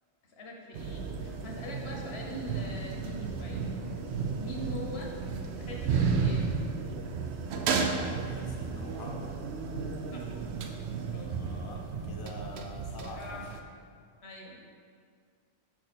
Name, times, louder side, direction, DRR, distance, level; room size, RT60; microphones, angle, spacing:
voice 1, 0.3-3.6 4.4-5.1 5.6-6.4 10.1-10.3 11.1-11.3 13.2-13.4 14.2-14.6, left 1 dB, 80° left, -1 dB, 1.2 m, -42 dB
sound 1, 0.7-13.6, right 5 dB, 90° right, 0.8 m, -33 dB
voice 2, 7.6-9.3 11.2-13.4, left 1 dB, 25° left, -1 dB, 0.7 m, -46 dB
5.8 x 5.1 x 4.2 m, 2.2 s
omnidirectional pair, 1.1 m